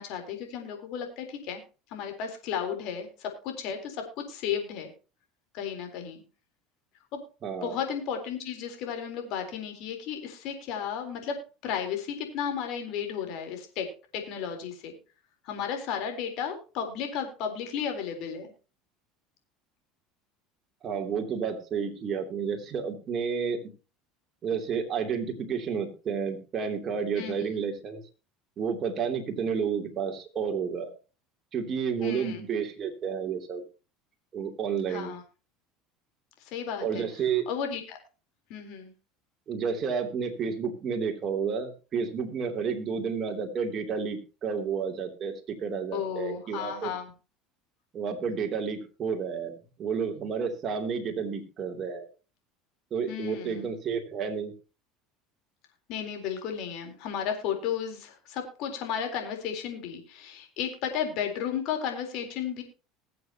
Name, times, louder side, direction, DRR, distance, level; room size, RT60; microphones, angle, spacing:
voice 1, 0.0-1.6 1.9-4.9 5.5-6.2 7.1-7.2 7.6-11.4 11.6-13.9 14.1-14.9 15.4-18.5 27.2-27.5 32.0-32.4 34.9-35.2 36.4-37.1 37.5-38.0 38.5-38.9 45.9-47.1 53.1-53.7 55.9-62.6, left 8 dB, 65° left, 4 dB, 3.7 m, -34 dB
voice 2, 7.4-7.8 20.8-23.6 24.4-28.0 28.6-30.9 31.5-33.6 34.3-35.1 36.8-37.5 39.5-46.9 47.9-52.1 52.9-54.5, right 6 dB, 40° right, 3 dB, 2.9 m, -31 dB
21.0 x 7.8 x 2.9 m, 0.33 s
supercardioid pair, 105°, 0 cm